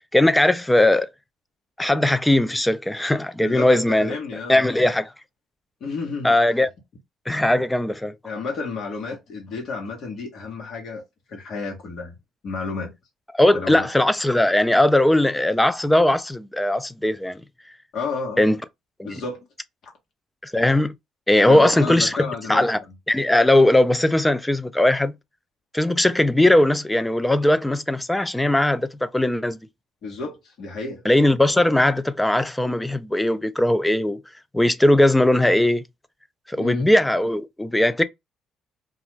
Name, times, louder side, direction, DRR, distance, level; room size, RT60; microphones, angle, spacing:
voice 1, 0.1-1.1 1.8-4.2 4.5-5.1 6.2-6.7 7.3-8.1 13.3-17.4 18.4-18.6 19.0-19.2 20.4-20.9 21.3-22.2 22.5-22.8 23.1-25.1 25.7-29.6 31.1-34.2 34.5-35.8 36.5-38.0, left 1 dB, 10° left, 0.3 m, -19 dB
voice 2, 3.4-4.9 5.8-6.4 8.2-11.0 11.3-12.1 12.4-12.9 13.5-13.9 17.9-18.5 19.0-19.5 21.5-22.8 30.0-31.0 36.6-36.9, left 4 dB, 60° left, 1.1 m, -31 dB
2.4 x 2.3 x 3.0 m
cardioid pair, 105°, 0 cm